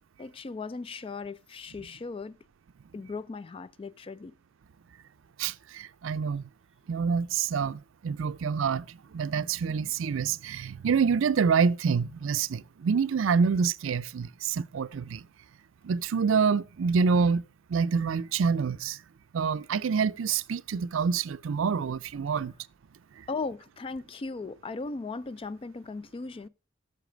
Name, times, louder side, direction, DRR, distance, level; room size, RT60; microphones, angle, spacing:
voice 1, 0.2-2.4 2.9-4.3 23.3-26.5, left 4 dB, 25° left, 0.3 m, -37 dB
voice 2, 5.4-6.4 6.9-15.2 15.8-17.4 17.7-19.0 19.3-22.5, right 5 dB, 75° right, 0.4 m, -27 dB
8.2 x 6.7 x 5.1 m
head